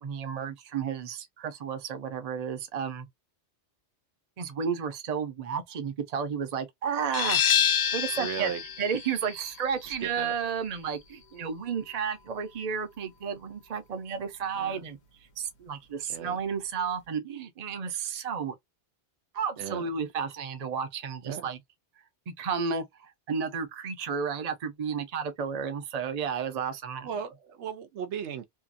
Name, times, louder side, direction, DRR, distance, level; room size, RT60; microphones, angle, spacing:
voice 1, 0.0-3.1 4.4-8.5 8.8-15.0 15.4-18.5 19.3-21.6 22.3-27.1, right 6 dB, 40° right, 0.7 m, -32 dB
sound 1, 7.1-12.5, left 8 dB, 50° left, 0.6 m, -29 dB
voice 2, 8.2-8.6 10.0-10.3 14.6-14.8 16.1-16.4 19.6-19.9 21.2-21.5 27.0-28.5, right 7 dB, 80° right, 0.9 m, -36 dB
2.6 x 2.5 x 2.5 m
omnidirectional pair, 1.2 m